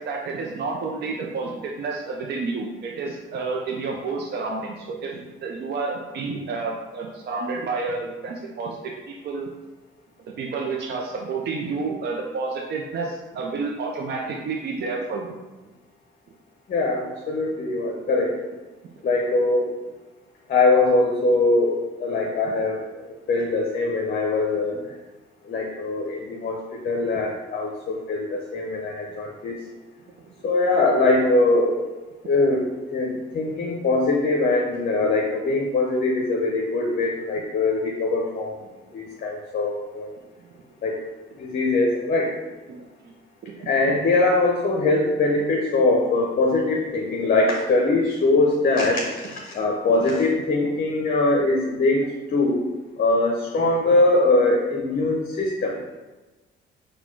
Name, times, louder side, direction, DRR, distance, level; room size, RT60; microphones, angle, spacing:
voice 1, 0.0-9.5 10.4-15.4 22.1-22.3 24.8-24.9 42.7-42.8 43.4-43.5 43.9-44.0, right 4 dB, 55° right, -1 dB, 0.6 m, -30 dB
voice 2, 16.7-18.4 19.0-19.7 20.5-24.8 25.4-29.6 30.4-31.8 32.3-38.5 38.9-40.1 40.8-41.0 41.4-42.3 43.6-52.1 52.3-52.6 53.0-55.7, left 2 dB, 50° left, -1 dB, 0.7 m, -22 dB
4.2 x 2.3 x 4.5 m, 1.2 s
cardioid pair, 90°, 20 cm